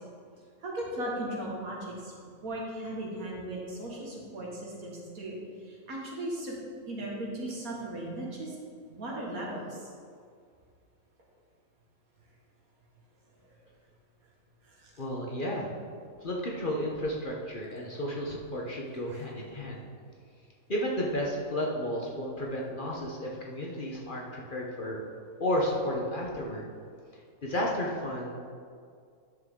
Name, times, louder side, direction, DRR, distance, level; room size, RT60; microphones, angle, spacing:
voice 1, 0.6-2.1 2.4-6.5 6.9-8.5 8.9-9.8 13.4-13.5 14.6-14.9 19.1-19.2, right 1 dB, 75° right, -3 dB, 2.1 m, -37 dB
voice 2, 15.0-15.7 16.2-19.9 20.7-25.0 25.4-26.6 27.4-28.4, equal, 40° left, -2 dB, 1.0 m, -32 dB
10.0 x 6.7 x 3.7 m, 2.2 s
omnidirectional pair, 1.5 m